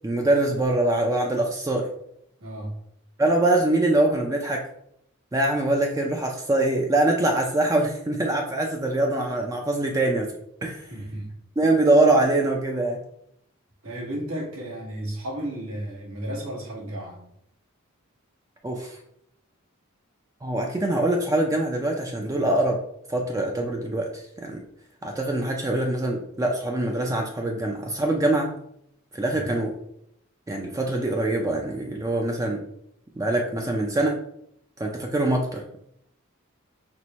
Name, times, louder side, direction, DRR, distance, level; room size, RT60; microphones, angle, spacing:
voice 1, 0.0-1.9 3.2-4.7 5.3-10.3 10.6-10.8 11.6-13.0 18.6-19.0 20.4-22.8 23.1-24.6 25.0-28.5 29.1-29.7 30.5-32.6 33.2-34.2 34.8-35.8, right 2 dB, 15° right, 0.3 m, -23 dB
voice 2, 2.4-2.8 10.9-11.3 13.8-17.2 29.3-29.5, right 1 dB, 85° right, 1.4 m, -33 dB
4.4 x 2.1 x 4.0 m
head